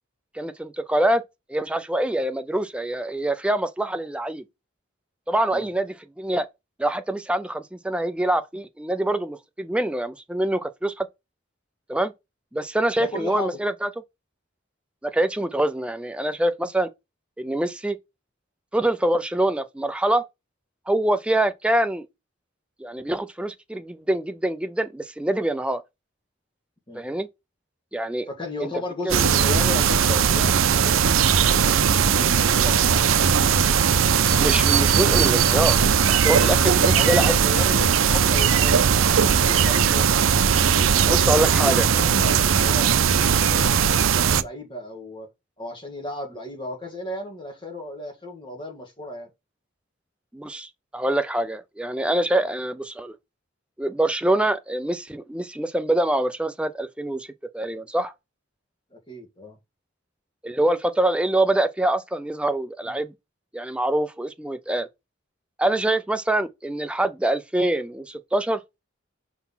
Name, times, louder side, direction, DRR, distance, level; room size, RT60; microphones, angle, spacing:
voice 1, 0.3-1.2 1.5-4.4 5.3-6.5 6.8-11.1 11.9-12.1 12.5-13.9 15.0-16.9 17.4-18.0 18.7-20.3 20.9-22.1 22.8-25.8 26.9-27.3 27.9-28.3 28.6-28.7 29.0-29.1 34.4-35.8 36.1-37.3 41.0-41.9 50.3-53.1 53.8-57.3 57.5-58.1 60.4-63.1 63.5-64.9 65.6-68.6, right 1 dB, 5° right, 0.4 m, -25 dB
voice 2, 13.0-13.6 26.9-27.0 28.3-31.7 32.1-33.0 36.7-38.9 39.2-40.2 41.0-42.9 43.3-45.3 45.6-49.3 58.9-59.6 62.8-63.0, left 2 dB, 25° left, 1.8 m, -34 dB
sound 1, 29.1-44.4, right 7 dB, 85° right, 0.5 m, -19 dB
5.6 x 4.1 x 5.6 m
head